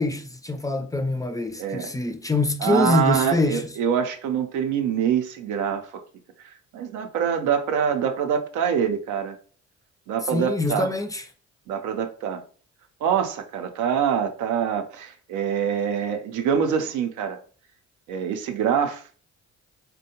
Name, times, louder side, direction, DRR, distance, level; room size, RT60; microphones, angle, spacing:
voice 1, 0.0-3.7 10.3-11.2, left 2 dB, 10° left, 0.4 m, -24 dB
voice 2, 1.6-1.9 2.6-6.0 6.7-9.4 10.1-10.9 11.7-12.4 13.0-17.4 18.1-19.0, right 8 dB, 90° right, 0.5 m, -25 dB
3.4 x 2.1 x 2.8 m
cardioid pair, 90°, 30 cm